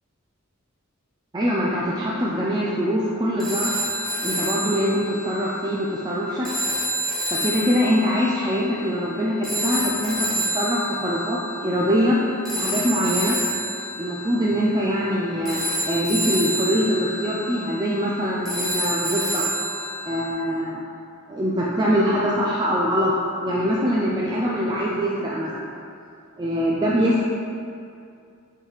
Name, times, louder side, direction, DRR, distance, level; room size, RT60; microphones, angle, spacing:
voice 1, 1.3-3.9 4.2-6.5 7.3-10.3 10.5-12.2 12.5-13.4 14.0-19.4 20.0-20.8 21.3-25.7 26.4-27.3, equal, 20° right, -5 dB, 0.5 m, -23 dB
sound 1, 3.4-20.3, equal, ahead, 1.1 m, -29 dB
5.6 x 5.5 x 3.2 m, 2.4 s
head